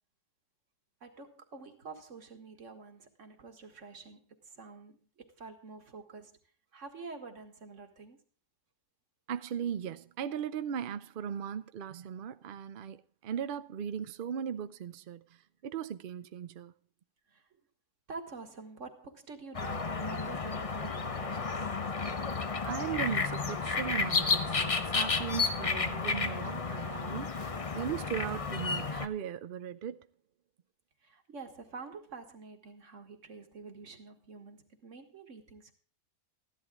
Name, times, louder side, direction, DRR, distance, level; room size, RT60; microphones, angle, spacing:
voice 1, 1.0-6.4 6.7-8.2 17.3-17.4 18.1-21.7 31.0-35.7, right 4 dB, 50° right, 2.0 m, -48 dB
voice 2, 9.3-15.2 15.6-16.7 22.7-27.3 27.7-30.0, right 8 dB, 70° right, 0.5 m, -37 dB
sound 1, 19.5-29.1, left 4 dB, 30° left, 0.6 m, -32 dB
14.5 x 11.5 x 3.7 m
omnidirectional pair, 1.7 m